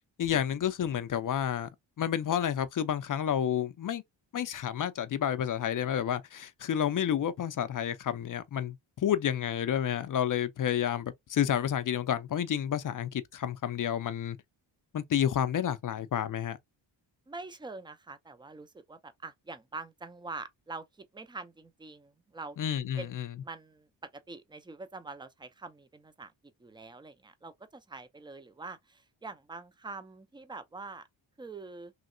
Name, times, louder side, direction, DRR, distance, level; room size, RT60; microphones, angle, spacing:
voice 1, 0.2-1.7 2.0-4.0 4.3-14.4 14.9-16.6 22.6-23.3, left 9 dB, 45° left, 0.5 m, -30 dB
voice 2, 17.3-22.6 23.0-23.2 23.4-23.9 24.3-26.3 26.6-31.0 31.4-31.9, right 3 dB, 10° right, 0.4 m, -44 dB
3.1 x 2.8 x 2.5 m
cardioid pair, 110°, 47 cm